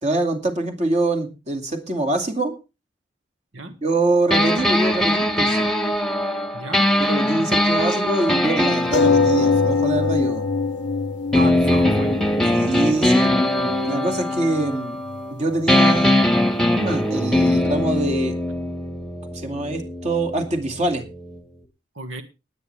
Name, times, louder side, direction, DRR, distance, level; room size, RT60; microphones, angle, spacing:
voice 1, 0.0-2.5 3.8-5.7 7.1-10.4 11.3-11.5 12.5-13.3 13.9-14.9 15.3-16.2 16.7-18.4 19.3-21.0, right 2 dB, 40° right, 5 dB, 2.5 m, -24 dB
sound 1, 4.3-10.8 11.3-15.4 15.7-21.4, left 1 dB, 5° left, 1.4 m, -21 dB
voice 2, 6.5-6.9 7.4-7.6 11.3-12.2 21.9-22.2, right 1 dB, 90° right, 7 dB, 1.7 m, -33 dB
sound 2, 8.9-13.9 14.7-14.8 15.1-15.2, left 4 dB, 65° left, 0.6 m, -22 dB
20.0 x 9.3 x 3.4 m, 0.29 s
head